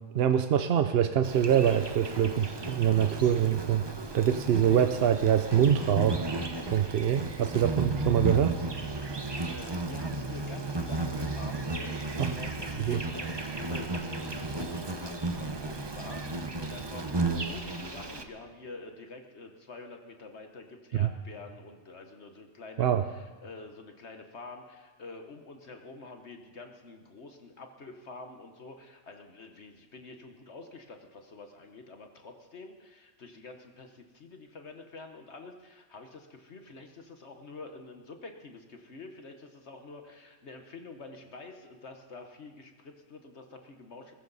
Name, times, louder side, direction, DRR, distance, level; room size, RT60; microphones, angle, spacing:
voice 1, 0.1-3.9 4.1-6.3 6.7-8.6 12.2-12.3 12.8-13.0 21.0-21.1 22.8-23.0, right 9 dB, 60° right, 9 dB, 0.7 m, -25 dB
Insect, 1.2-18.2, right 3 dB, 20° right, 0.9 m, -34 dB
voice 2, 9.5-44.1, left 3 dB, 60° left, 5 dB, 1.4 m, -47 dB
21.0 x 14.5 x 4.1 m, 1.4 s
omnidirectional pair, 1.3 m